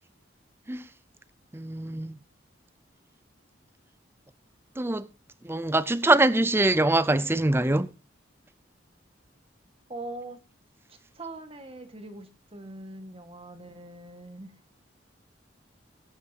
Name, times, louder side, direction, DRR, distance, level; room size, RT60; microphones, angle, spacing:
voice 1, 1.5-2.2 4.8-5.1 5.4-7.9, right 2 dB, 15° right, 0.5 m, -23 dB
voice 2, 9.9-10.4 10.9-14.6, right 2 dB, 30° right, 1.7 m, -42 dB
20.0 x 10.0 x 2.9 m
head